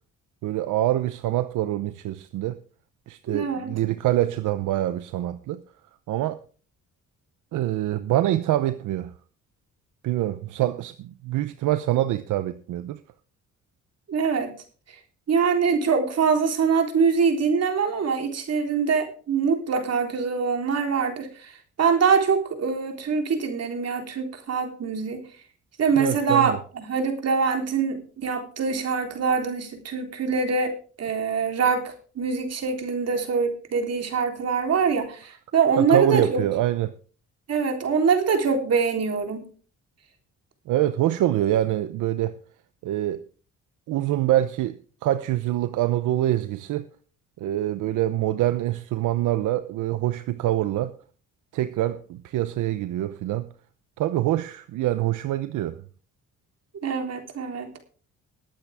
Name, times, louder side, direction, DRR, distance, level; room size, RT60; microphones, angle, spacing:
voice 1, 0.4-2.6 3.1-5.6 6.1-6.4 7.5-9.1 10.0-13.0 26.0-26.6 35.8-36.9 40.7-42.4 42.8-43.3 43.9-46.9 47.4-50.9 51.5-53.5 54.0-55.8, right 13 dB, 80° right, 0.8 m, -25 dB
voice 2, 3.3-3.7 14.1-14.5 15.3-25.2 25.8-36.4 37.5-39.5 56.8-57.7, right 5 dB, 55° right, 3.6 m, -24 dB
21.0 x 8.8 x 3.6 m
cardioid pair, 90°, 30 cm